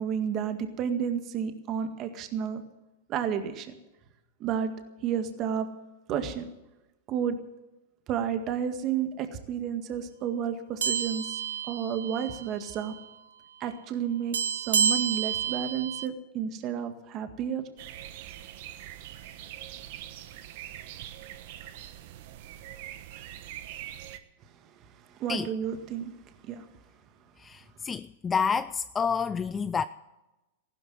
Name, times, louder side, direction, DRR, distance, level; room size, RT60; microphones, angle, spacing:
voice 1, 0.0-2.6 3.1-3.7 4.4-4.7 5.0-5.7 6.1-6.5 7.1-7.4 8.1-11.4 11.7-12.9 13.6-17.6 25.1-26.1 26.4-26.7, right 8 dB, 40° right, 1.8 m, -31 dB
sound 1, 10.8-12.5 12.7-13.0 14.3-16.1, right 7 dB, 90° right, 0.7 m, -29 dB
sound 2, 17.8-24.2, right 12 dB, 60° right, 1.3 m, -43 dB
voice 2, 27.4-29.8, left 6 dB, 20° left, 0.4 m, -29 dB
15.5 x 12.0 x 7.7 m
hypercardioid pair, 120°, 0 cm